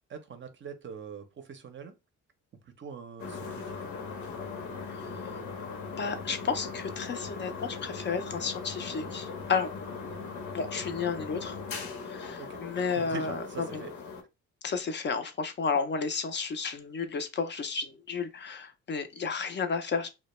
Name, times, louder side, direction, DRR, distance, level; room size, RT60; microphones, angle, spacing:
voice 1, 0.1-1.9 2.6-3.7 10.6-10.7 12.4-13.9, right 5 dB, 40° right, 0.5 m, -43 dB
sound 1, 3.2-14.2, left 5 dB, 70° left, 0.8 m, -39 dB
voice 2, 4.9-5.4 6.0-9.7 10.5-11.6 12.0-13.4 13.7-13.8 14.6-20.1, left 5 dB, 40° left, 0.4 m, -32 dB
2.1 x 2.1 x 2.9 m
cardioid pair, 90°, 30 cm